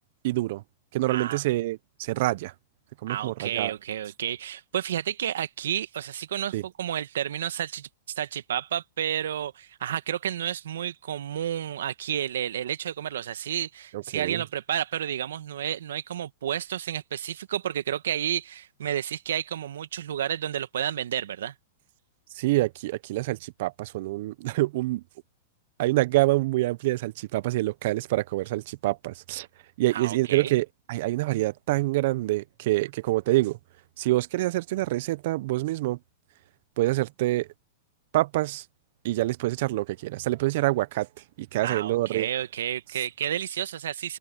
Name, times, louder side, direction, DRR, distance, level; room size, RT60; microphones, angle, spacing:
voice 1, 0.2-0.6 0.9-2.5 3.0-3.7 6.5-6.6 13.9-14.4 22.3-25.0 25.8-29.5 29.8-33.6 34.0-36.0 36.8-37.5 38.1-38.6 39.0-41.1 41.4-42.3, right 18 dB, 60° right, 0.9 m, -26 dB
voice 2, 1.1-1.4 3.1-7.9 8.1-21.5 29.9-30.5 41.6-44.2, right 10 dB, 75° right, 1.6 m, -31 dB
open air
hypercardioid pair, 115°, 0 cm